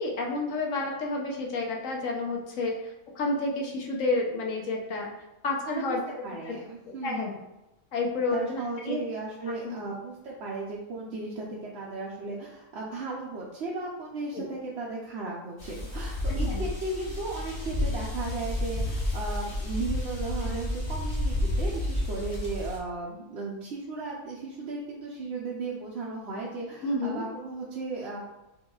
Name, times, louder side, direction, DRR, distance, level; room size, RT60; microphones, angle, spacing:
voice 1, 0.0-5.1 5.4-6.0 6.4-6.6 7.0-7.3 7.9-9.0 9.6-9.8 14.3-14.4 16.3-16.6 26.8-27.2, left 2 dB, 70° left, 0 dB, 1.1 m, -30 dB
voice 2, 5.7-6.0 6.2-7.2 8.3-28.2, right 3 dB, 60° right, -5 dB, 0.8 m, -36 dB
sound 1, 15.6-22.8, left 1 dB, 50° left, 1.4 m, -31 dB
5.4 x 3.0 x 2.3 m, 0.97 s
omnidirectional pair, 1.5 m